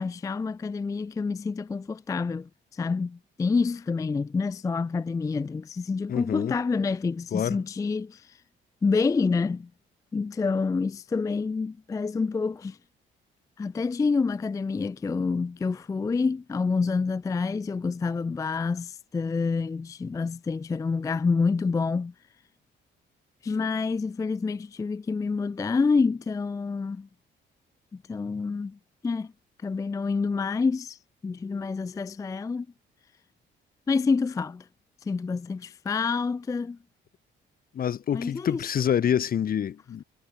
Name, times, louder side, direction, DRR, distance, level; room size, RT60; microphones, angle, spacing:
voice 1, 0.0-8.4 8.8-9.7 10.1-12.8 13.6-22.1 23.4-27.1 27.9-29.3 29.6-32.7 33.9-34.7 35.0-36.8 38.1-38.7, left 4 dB, 15° left, 0.3 m, -28 dB
voice 2, 6.1-6.6 7.3-7.6 37.7-40.0, left 9 dB, 50° left, 0.8 m, -26 dB
cardioid pair, 90°, 20 cm